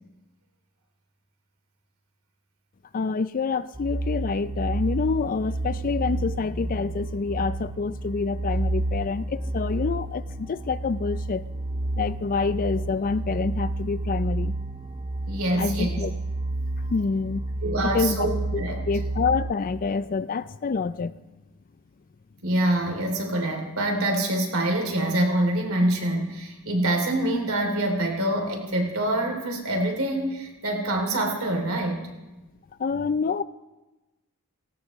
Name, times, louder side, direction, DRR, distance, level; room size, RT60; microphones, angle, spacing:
voice 1, 2.9-11.4 12.0-14.5 15.6-16.1 16.9-17.5 17.9-18.3 18.5-21.2 32.8-33.4, left 4 dB, 40° left, 15 dB, 0.4 m, -27 dB
sound 1, 3.7-19.5, right 2 dB, 25° right, 0.8 m, -30 dB
voice 2, 15.3-16.0 17.6-18.8 22.4-32.0, right 1 dB, 65° right, 2 dB, 3.0 m, -25 dB
18.0 x 18.0 x 3.1 m, 1.1 s
head